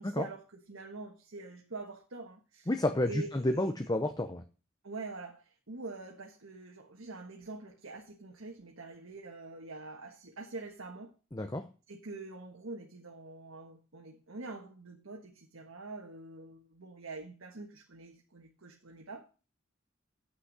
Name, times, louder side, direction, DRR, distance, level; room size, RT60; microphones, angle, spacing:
voice 1, 0.0-2.7 3.1-3.7 4.8-11.1 11.9-19.3, right 3 dB, 90° right, 1.5 m, -45 dB
voice 2, 2.7-4.4 11.3-11.6, left 1 dB, 20° left, 0.8 m, -30 dB
8.3 x 6.2 x 8.1 m
head